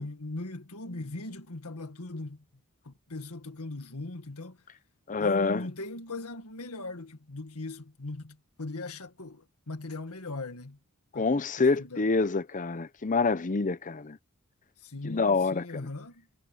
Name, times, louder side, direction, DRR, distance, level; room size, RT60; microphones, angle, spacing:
voice 1, 0.0-2.4 2.8-4.6 5.2-10.8 11.1-11.3 11.6-12.1 14.8-16.3, left 2 dB, 80° left, 1.9 m, -39 dB
voice 2, 5.1-5.7 11.1-14.2 15.0-15.8, left 4 dB, 35° left, 0.7 m, -27 dB
head